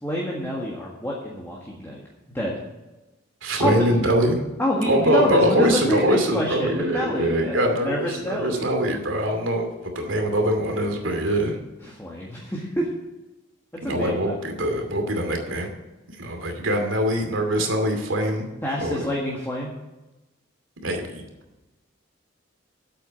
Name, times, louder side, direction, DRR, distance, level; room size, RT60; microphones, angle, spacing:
voice 1, 0.0-2.0 2.3-2.6 3.6-3.8 4.6-8.7 11.8-12.9 13.8-14.3 18.6-19.7, equal, 10° left, -3 dB, 1.7 m, -27 dB
voice 2, 3.4-4.4 4.8-11.6 13.8-15.7 16.2-18.4 18.8-19.1 20.8-21.2, right 1 dB, 80° right, 4 dB, 2.6 m, -23 dB
8.7 x 8.3 x 7.9 m, 1.1 s
head